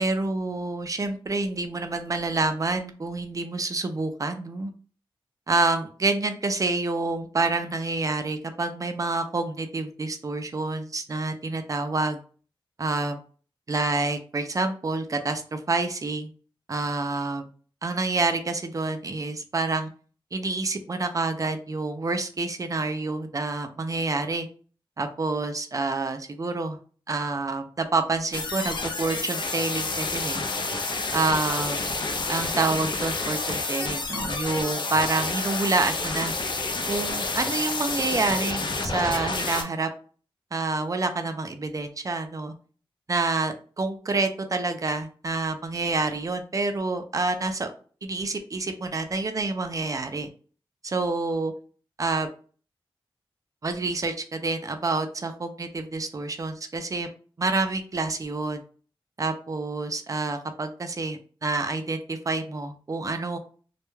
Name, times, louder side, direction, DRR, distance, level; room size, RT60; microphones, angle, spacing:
voice 1, 0.0-4.7 5.5-12.2 12.8-13.2 13.7-16.3 16.7-17.5 17.8-19.9 20.3-24.5 25.0-26.8 27.1-30.5 31.1-31.8 32.3-36.3 36.9-39.9 40.5-42.5 43.1-47.7 48.0-50.3 50.8-51.5 52.0-52.3 53.6-57.1 57.4-58.6 59.2-63.4, right 3 dB, 40° right, 7 dB, 0.4 m, -28 dB
sound 1, 28.3-39.6, left 3 dB, 55° left, 0.5 m, -29 dB
2.2 x 2.1 x 3.0 m, 0.41 s
wide cardioid pair, 105°, 9 cm